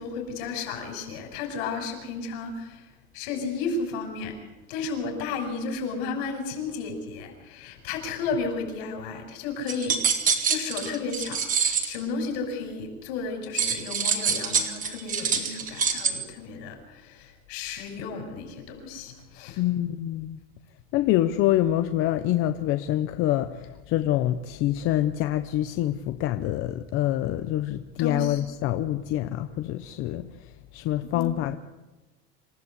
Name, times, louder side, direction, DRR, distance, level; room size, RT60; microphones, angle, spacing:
voice 1, 0.0-2.8 3.1-4.3 4.7-10.0 10.4-19.6 28.0-28.4 31.1-31.3, left 4 dB, 70° left, 4 dB, 6.7 m, -33 dB
sound 1, 9.7-12.0 13.6-16.1, right 6 dB, 25° right, 2.3 m, -25 dB
voice 2, 19.6-20.4 20.9-30.3 30.7-31.5, left 13 dB, 40° left, 9 dB, 0.8 m, -26 dB
27.0 x 15.5 x 8.3 m, 1.1 s
cardioid pair, 170°, 32 cm